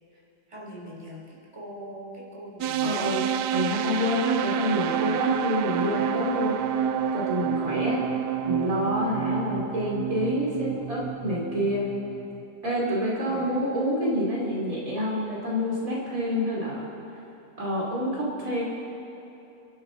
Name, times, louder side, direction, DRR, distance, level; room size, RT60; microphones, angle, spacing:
voice 1, 0.5-3.2 13.2-13.6, equal, 15° right, -5 dB, 3.5 m, -42 dB
sound 1, 2.6-12.4, right 8 dB, 85° right, 1.2 m, -29 dB
voice 2, 2.8-3.3 3.5-6.6 7.1-8.0 8.4-11.9 12.6-16.9 17.6-18.6, equal, 55° right, -5 dB, 3.3 m, -27 dB
29.5 x 12.0 x 4.0 m, 2.8 s
omnidirectional pair, 1.8 m